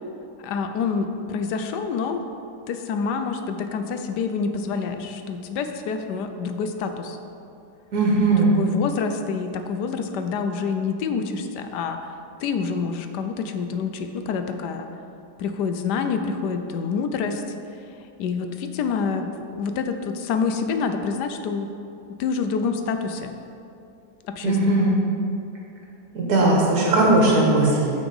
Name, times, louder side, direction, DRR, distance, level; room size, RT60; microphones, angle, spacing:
voice 1, 0.4-2.2 2.7-7.2 8.3-12.1 12.4-14.9 15.4-17.4 18.2-21.7 22.2-23.3 24.3-24.9, left 5 dB, 80° left, 7 dB, 1.3 m, -27 dB
voice 2, 7.9-8.5 24.4-25.0 26.1-27.9, right 2 dB, 65° right, -3 dB, 2.1 m, -18 dB
9.2 x 5.9 x 5.4 m, 2.7 s
omnidirectional pair, 1.8 m